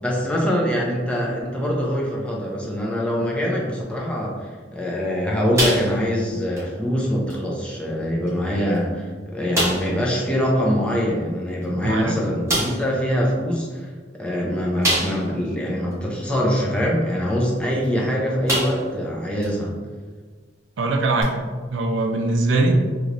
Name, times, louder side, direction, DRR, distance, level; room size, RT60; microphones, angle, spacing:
voice 1, 0.0-4.3 4.7-13.9 14.2-19.8, equal, 5° left, -3 dB, 0.5 m, -23 dB
sound 1, 5.6-6.2 6.6-6.7 7.3-7.4 8.3-8.4 8.7-8.8 9.5-10.0 11.6-11.7 12.5-12.9 14.8-15.4 15.9-16.0 17.8-18.0 18.5-19.0 19.4-19.5 21.2-21.3, right 1 dB, 15° right, 1.0 m, -24 dB
voice 2, 11.8-12.2 20.8-21.4 21.7-22.7, right 2 dB, 85° right, 3 dB, 0.4 m, -21 dB
3.0 x 2.9 x 2.5 m, 1.5 s
head